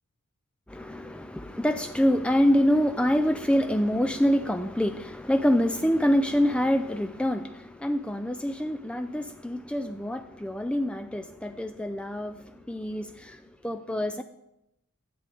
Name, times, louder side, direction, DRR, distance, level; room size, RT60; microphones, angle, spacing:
voice 1, 0.7-14.2, equal, 5° left, 0.3 m, -26 dB
13.0 x 11.0 x 3.4 m
head